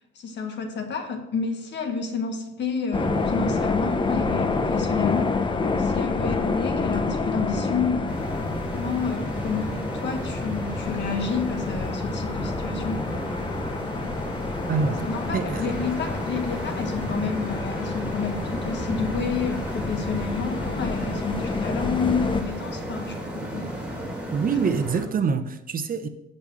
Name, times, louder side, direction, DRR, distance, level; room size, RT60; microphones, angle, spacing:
voice 1, 0.1-5.3 5.8-8.2 8.7-13.0 14.8-23.7, left 5 dB, 65° left, 4 dB, 1.7 m, -30 dB
sound 1, 2.9-22.4, left 3 dB, 25° left, 0.8 m, -28 dB
sound 2, 6.6-24.2, right 3 dB, 30° right, 1.9 m, -45 dB
sound 3, 8.1-25.0, equal, 5° right, 3.2 m, -34 dB
voice 2, 14.7-15.0 15.3-15.7 24.3-26.1, right 5 dB, 45° right, 9 dB, 0.8 m, -25 dB
8.8 x 5.4 x 6.1 m, 0.90 s
cardioid pair, 90°, 20 cm